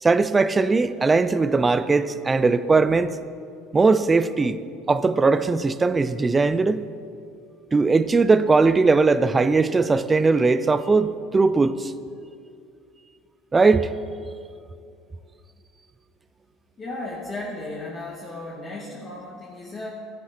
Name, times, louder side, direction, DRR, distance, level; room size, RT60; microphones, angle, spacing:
voice 1, 0.0-3.1 3.7-4.6 4.9-6.8 7.7-11.9 13.5-13.9, right 4 dB, 20° right, 0.4 m, -19 dB
voice 2, 16.8-19.9, left 2 dB, 30° left, 1.7 m, -35 dB
13.0 x 10.5 x 4.3 m
supercardioid pair, 120°, 0 cm